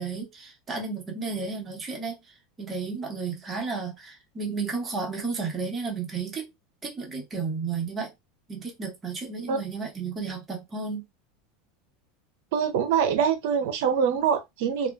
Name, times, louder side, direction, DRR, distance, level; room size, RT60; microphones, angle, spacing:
voice 1, 0.0-6.5 6.8-8.1 8.5-11.0, right 4 dB, 25° right, 1.1 m, -33 dB
voice 2, 12.5-14.9, right 7 dB, 70° right, 0.6 m, -24 dB
2.5 x 2.3 x 2.2 m
supercardioid pair, 110°, 0 cm